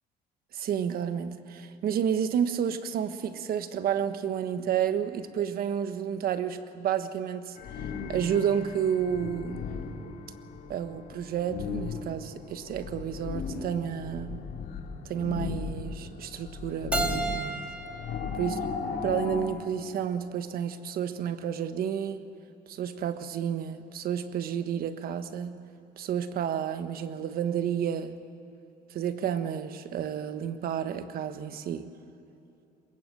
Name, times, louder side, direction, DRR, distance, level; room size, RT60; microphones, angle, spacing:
voice 1, 0.5-7.6 8.1-9.6 10.7-14.4 15.0-17.6 18.4-18.6 19.0-22.2 22.7-25.6 26.0-28.2 28.9-31.8, right 8 dB, 60° right, 10 dB, 1.3 m, -30 dB
sound 1, 7.6-19.4, left 5 dB, 65° left, 2.9 m, -37 dB
Keyboard (musical), 16.9-19.7, right 3 dB, 5° right, 1.9 m, -34 dB
22.5 x 21.0 x 7.7 m, 2.7 s
cardioid pair, 110°, 17 cm